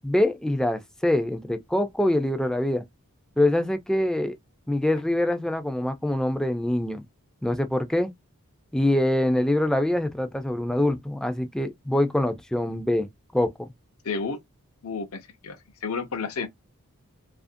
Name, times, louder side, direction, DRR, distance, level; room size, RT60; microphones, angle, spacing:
voice 1, 0.0-2.8 3.4-4.4 4.7-7.0 7.4-8.1 8.7-13.1 13.3-13.5, left 1 dB, 5° left, 0.3 m, -24 dB
voice 2, 14.0-14.4 14.8-16.5, left 4 dB, 75° left, 0.6 m, -31 dB
2.7 x 2.5 x 2.5 m
head